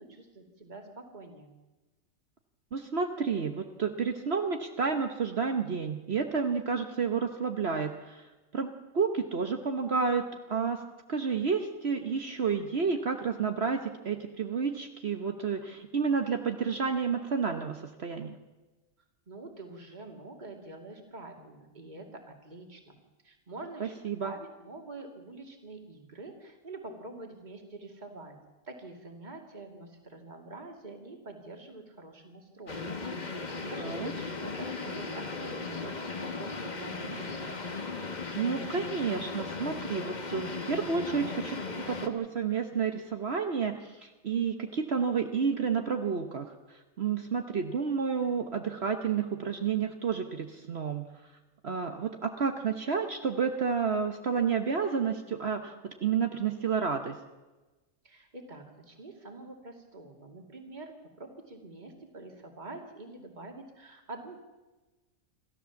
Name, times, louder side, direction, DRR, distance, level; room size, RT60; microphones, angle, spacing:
voice 1, 0.0-1.5 19.3-23.0 23.2-28.4 28.6-32.9 33.2-37.6 58.0-64.4, right 2 dB, 35° right, 2 dB, 2.6 m, -46 dB
voice 2, 2.7-10.8 11.1-18.4 23.8-24.3 33.8-34.1 38.4-51.3 51.6-57.2, right 6 dB, 50° right, 5 dB, 1.2 m, -30 dB
sound 1, 32.7-42.1, left 3 dB, 35° left, 1.5 m, -37 dB
28.0 x 13.5 x 7.1 m, 1.1 s
omnidirectional pair, 1.4 m